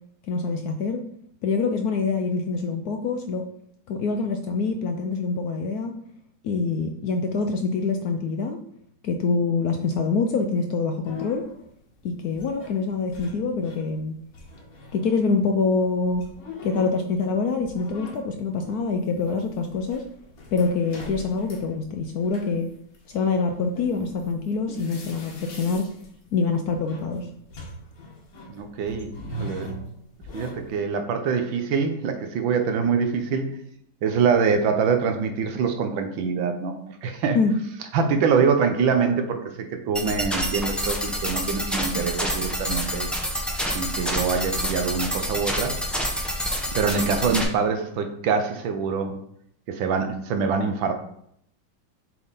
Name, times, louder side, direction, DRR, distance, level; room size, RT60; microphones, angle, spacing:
voice 1, 0.3-1.0 1.4-3.4 3.9-5.9 6.4-8.6 9.0-11.4 12.0-14.1 14.9-16.3 16.6-20.0 20.5-22.7 23.1-25.9 26.3-27.3 37.3-37.5, left 4 dB, 70° left, 5 dB, 0.9 m, -25 dB
sound 1, 11.0-14.0 14.3-30.8, left 1 dB, 50° left, 1.5 m, -42 dB
voice 2, 28.5-29.7 30.3-33.6 34.0-37.4 37.9-43.1 43.7-45.8 46.7-49.2 49.7-50.9, right 5 dB, 80° right, 6 dB, 1.6 m, -24 dB
sound 2, 39.9-47.4, equal, ahead, 0.4 m, -28 dB
7.2 x 3.6 x 4.1 m, 0.69 s
omnidirectional pair, 2.1 m